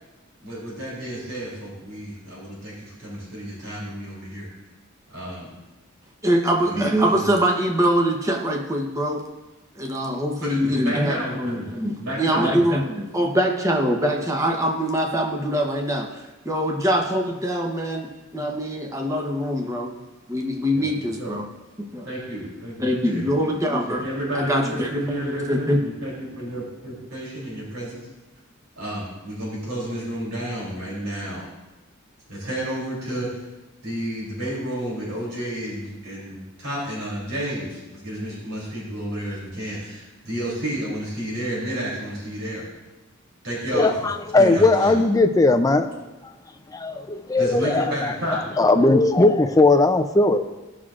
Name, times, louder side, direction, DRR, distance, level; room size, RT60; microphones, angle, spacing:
voice 1, 0.4-4.5 5.1-5.5 6.6-7.4 10.4-11.7 12.0-12.8 20.7-20.8 21.2-21.3 22.0-23.3 23.9-28.0 28.8-31.4 32.3-33.3 33.8-42.6 43.4-44.1 44.4-45.0 47.4-48.4, right 1 dB, 80° right, -6 dB, 3.1 m, -31 dB
voice 2, 6.2-9.2 9.8-20.0 20.3-21.5 21.8-22.1 22.8-24.1 24.3-25.8, equal, 15° right, 1 dB, 0.9 m, -23 dB
voice 3, 43.7-45.9 46.2-46.3 46.7-48.1 48.6-50.5, left 2 dB, 15° left, 7 dB, 0.4 m, -18 dB
15.5 x 6.1 x 2.5 m, 1.1 s
head